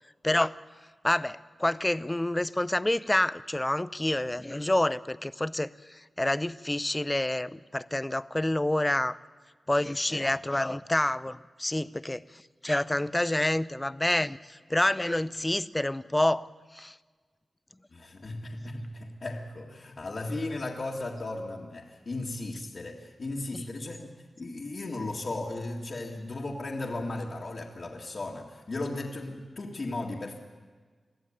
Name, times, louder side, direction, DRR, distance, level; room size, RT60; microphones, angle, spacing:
voice 1, 1.0-9.2 9.7-12.2 12.6-16.5 16.7-16.9, left 1 dB, 15° left, 16 dB, 0.6 m, -28 dB
voice 2, 17.9-30.4, left 2 dB, 50° left, -4 dB, 2.1 m, -36 dB
22.5 x 15.0 x 8.8 m, 1.5 s
wide cardioid pair, 90°, 0 cm